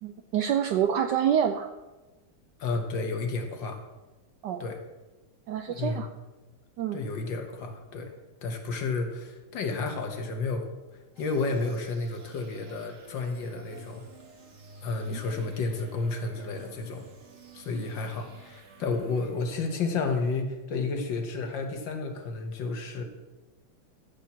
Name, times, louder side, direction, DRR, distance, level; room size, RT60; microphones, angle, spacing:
voice 1, 0.0-1.7 4.4-4.6 5.5-6.1 6.8-7.0 15.1-15.2, right 9 dB, 75° right, 7 dB, 1.0 m, -27 dB
voice 2, 2.6-3.8 4.6-4.8 5.7-6.1 6.9-8.1 8.4-10.7 11.2-14.0 14.8-17.1 17.5-23.0, left 3 dB, 65° left, 4 dB, 1.8 m, -31 dB
sound 1, 11.2-20.0, right 2 dB, 45° right, 1.5 m, -51 dB
13.0 x 4.4 x 7.2 m, 1.1 s
omnidirectional pair, 2.3 m